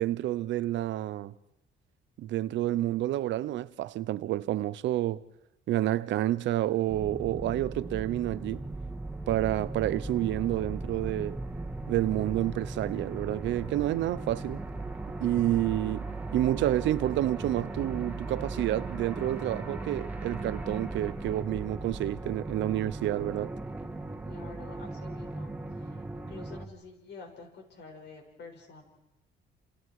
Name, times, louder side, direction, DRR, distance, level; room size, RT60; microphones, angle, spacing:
voice 1, 0.0-1.3 2.2-5.2 5.7-8.6 9.3-11.4 11.9-14.6 15.2-23.5, right 14 dB, 85° right, 0.8 m, -29 dB
sound 1, 6.9-26.6, right 2 dB, 10° right, 1.9 m, -38 dB
voice 2, 24.3-25.5 25.8-28.8, left 4 dB, 65° left, 6.8 m, -48 dB
30.0 x 28.0 x 4.9 m
cardioid pair, 110°, 19 cm